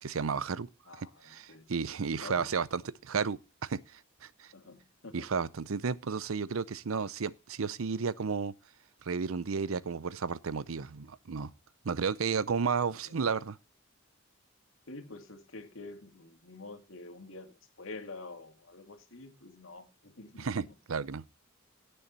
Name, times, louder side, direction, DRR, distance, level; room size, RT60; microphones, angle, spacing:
voice 1, 0.0-0.7 1.0-4.5 5.1-8.5 9.0-11.5 11.8-13.6 20.4-21.2, right 5 dB, 90° right, 0.6 m, -33 dB
voice 2, 0.8-1.7 2.2-2.6 4.5-5.3 12.8-13.2 14.9-20.8, left 3 dB, 75° left, 2.1 m, -48 dB
16.5 x 6.9 x 4.1 m
head